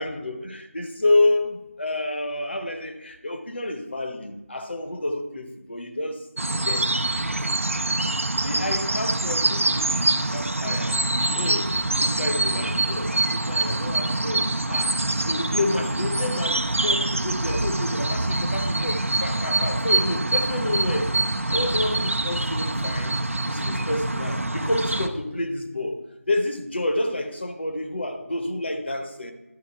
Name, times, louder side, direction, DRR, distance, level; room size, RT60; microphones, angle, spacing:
voice 1, 0.0-6.3 6.6-6.9 7.3-8.1 8.4-11.0 11.3-11.7 12.0-15.0 15.2-21.1 21.5-23.2 23.5-26.0 26.3-29.3, left 2 dB, 50° left, 1.0 m, -29 dB
sound 1, 6.4-25.1, right 2 dB, 65° right, 0.7 m, -25 dB
11.5 x 5.0 x 4.5 m
figure-of-eight pair, 170°, 8 cm